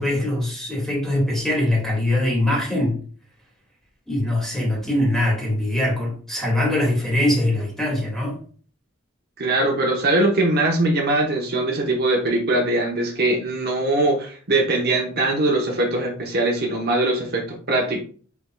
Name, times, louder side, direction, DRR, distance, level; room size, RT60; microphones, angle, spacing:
voice 1, 0.0-3.0 4.1-8.4, left 1 dB, ahead, 2.0 m, -22 dB
voice 2, 9.4-18.0, right 2 dB, 50° right, 0.9 m, -21 dB
5.0 x 4.6 x 2.3 m
head